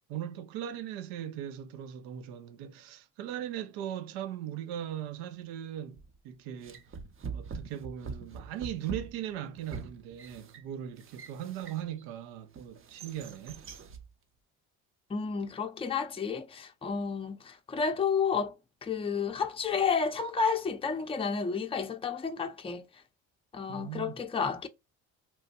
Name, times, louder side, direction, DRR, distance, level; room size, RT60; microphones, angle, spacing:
voice 1, 0.1-6.8 7.3-13.7 23.7-24.1, right 10 dB, 85° right, 0.5 m, -39 dB
sound 1, 6.0-6.2 6.6-12.1 12.5-14.1, right 5 dB, 35° right, 0.6 m, -43 dB
voice 2, 15.1-18.5 18.8-23.0 23.5-24.7, left 5 dB, 15° left, 0.5 m, -31 dB
2.9 x 2.2 x 2.8 m
supercardioid pair, 70°, 35 cm